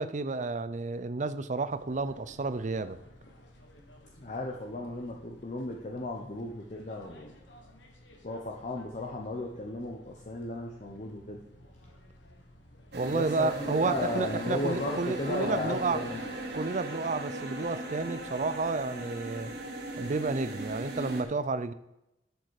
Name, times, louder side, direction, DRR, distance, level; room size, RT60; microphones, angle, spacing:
voice 1, 0.0-3.0 12.9-16.0 16.5-19.5 20.0-21.7, right 3 dB, 45° right, 13 dB, 0.5 m, -31 dB
sound 1, 1.7-16.6, left 1 dB, 85° left, 1.6 m, -55 dB
voice 2, 4.2-7.3 8.2-11.4 13.1-16.4, left 2 dB, 40° left, 0 dB, 1.0 m, -35 dB
sound 2, 12.9-21.2, right 1 dB, 65° right, 1.6 m, -38 dB
11.5 x 6.8 x 4.9 m, 0.87 s
head